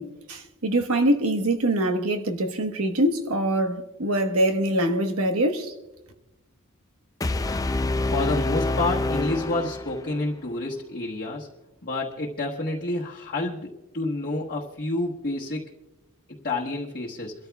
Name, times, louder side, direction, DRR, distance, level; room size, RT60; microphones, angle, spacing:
voice 1, 0.0-5.7, right 1 dB, 70° right, 1.3 m, -24 dB
sound 1, 7.2-10.3, left 2 dB, 15° left, 0.4 m, -27 dB
voice 2, 8.0-11.5 11.8-15.7 16.3-17.3, left 2 dB, 40° left, 1.3 m, -29 dB
29.5 x 13.5 x 2.3 m
head